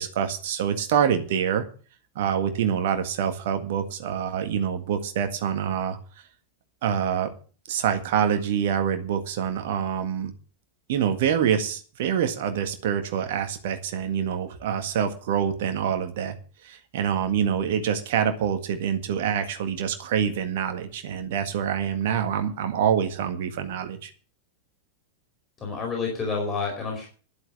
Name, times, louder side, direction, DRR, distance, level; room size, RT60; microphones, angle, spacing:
voice 1, 0.0-1.7 2.1-6.0 6.8-7.3 7.7-10.3 10.9-16.3 16.6-24.1, right 8 dB, 55° right, 7 dB, 1.7 m, -26 dB
voice 2, 25.6-27.1, left 4 dB, 25° left, 1 dB, 4.7 m, -29 dB
11.5 x 7.9 x 7.6 m, 0.40 s
figure-of-eight pair, 90°, 0 cm